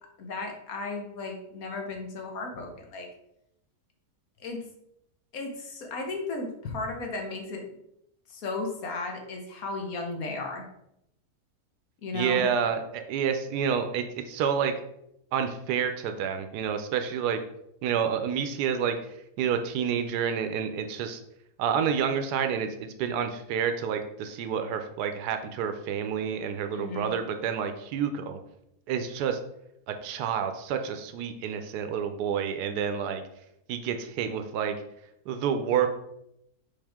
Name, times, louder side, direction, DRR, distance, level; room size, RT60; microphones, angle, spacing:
voice 1, 0.2-3.1 4.4-4.7 5.3-7.7 8.3-10.7 12.0-12.5 26.7-27.1, left 3 dB, 65° left, 3 dB, 1.5 m, -35 dB
voice 2, 12.1-14.7 15.3-17.4 17.8-19.0 19.4-21.2 21.6-28.4 28.9-29.4 29.9-33.2 33.7-34.7 35.3-35.9, right 7 dB, 85° right, 7 dB, 1.2 m, -29 dB
5.4 x 5.1 x 3.5 m, 0.78 s
omnidirectional pair, 1.7 m